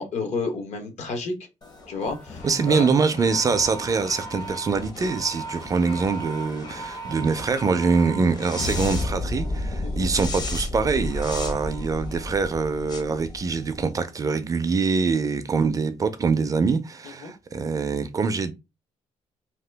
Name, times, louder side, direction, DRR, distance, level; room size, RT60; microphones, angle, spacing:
voice 1, 0.0-1.3 1.9-2.9 9.8-10.1 17.0-17.3, left 3 dB, 70° left, 0.9 m, -31 dB
sound 1, 1.6-14.0, left 1 dB, 35° left, 0.6 m, -33 dB
voice 2, 2.4-18.5, right 4 dB, 30° right, 0.3 m, -24 dB
2.8 x 2.2 x 3.3 m
cardioid pair, 130°, 12 cm